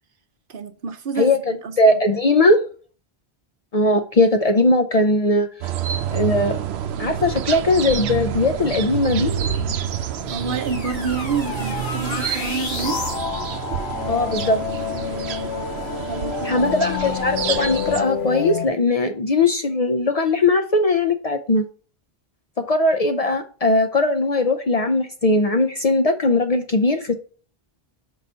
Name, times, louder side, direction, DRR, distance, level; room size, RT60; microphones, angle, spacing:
voice 1, 0.5-2.0 10.3-13.0 16.1-16.8, right 5 dB, 60° right, 0.8 m, -28 dB
voice 2, 1.8-2.6 3.7-5.5 6.1-6.6 7.0-9.3 14.1-14.6 16.4-21.7 22.6-27.1, left 2 dB, 45° left, 0.5 m, -19 dB
sound 1, 5.6-18.0, right 9 dB, 90° right, 0.8 m, -28 dB
sound 2, 9.3-13.3, left 2 dB, 65° left, 1.8 m, -32 dB
sound 3, 12.8-18.7, left 8 dB, 85° left, 1.0 m, -28 dB
5.5 x 3.9 x 5.4 m
omnidirectional pair, 1.0 m